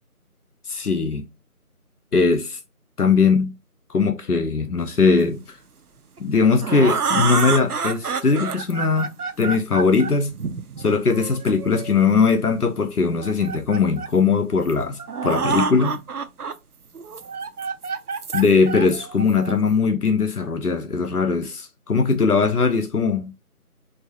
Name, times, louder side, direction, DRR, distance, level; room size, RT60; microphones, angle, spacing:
voice 1, 0.7-1.3 2.1-2.6 3.0-3.5 3.9-5.4 6.2-10.3 10.8-16.0 18.3-23.3, left 4 dB, 80° left, 0.9 m, -20 dB
sound 1, 6.2-12.1 13.0-14.2 14.7-14.8 15.0-16.5 17.0-19.7, right 5 dB, 80° right, 0.7 m, -28 dB
4.5 x 3.1 x 3.0 m
figure-of-eight pair, 175°, 45 cm